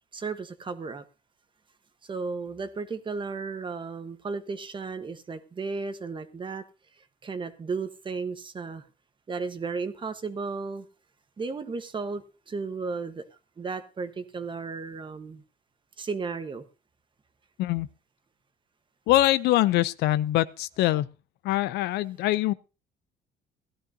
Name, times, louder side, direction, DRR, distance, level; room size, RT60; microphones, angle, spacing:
voice 1, 0.1-1.0 2.1-6.6 7.2-8.8 9.3-10.8 11.4-13.2 13.6-15.4 16.0-16.6, right 4 dB, 30° right, 1.1 m, -34 dB
voice 2, 19.1-21.1 21.4-22.5, left 15 dB, 80° left, 0.5 m, -23 dB
16.5 x 12.0 x 2.7 m
cardioid pair, 110°, 17 cm